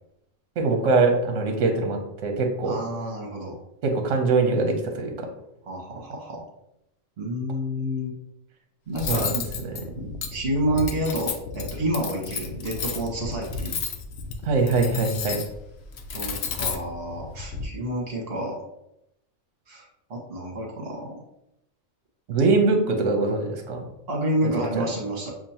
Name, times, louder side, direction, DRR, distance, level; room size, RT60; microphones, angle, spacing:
voice 1, 0.6-2.8 3.8-5.3 9.1-9.3 14.4-15.4 22.3-23.8 24.8-24.9, right 3 dB, 70° right, 3 dB, 1.1 m, -22 dB
voice 2, 2.6-3.6 5.6-6.4 7.2-8.1 8.9-9.4 9.9-13.7 16.1-18.6 19.7-19.8 20.1-21.2 24.1-25.3, right 1 dB, 50° right, -1 dB, 1.4 m, -29 dB
Cutlery silverware, 8.9-17.6, left 5 dB, 60° left, 0.8 m, -33 dB
7.1 x 2.6 x 2.8 m, 0.82 s
omnidirectional pair, 1.4 m